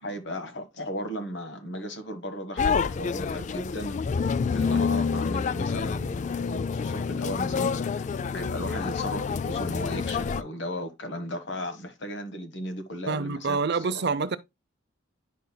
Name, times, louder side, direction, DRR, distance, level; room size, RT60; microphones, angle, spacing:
voice 1, 0.0-4.0 4.5-8.1 8.3-13.6 13.9-14.0, left 1 dB, 60° left, 1.5 m, -36 dB
sound 1, 2.6-10.4, left 5 dB, 40° left, 0.3 m, -28 dB
voice 2, 13.1-14.4, right 4 dB, 55° right, 0.6 m, -27 dB
10.0 x 5.4 x 2.3 m
head